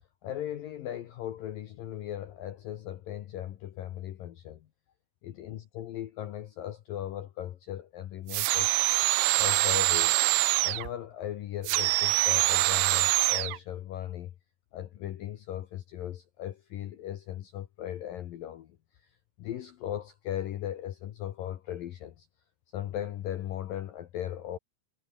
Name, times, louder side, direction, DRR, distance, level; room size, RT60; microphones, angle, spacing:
voice 1, 0.2-4.6 5.2-8.8 9.4-10.1 10.6-14.3 14.7-18.7 19.4-22.1 22.7-24.6, left 11 dB, 75° left, 2.0 m, -37 dB
sound 1, 8.3-10.9 11.6-13.6, right 21 dB, 80° right, 3.0 m, -25 dB
omnidirectional pair, 5.9 m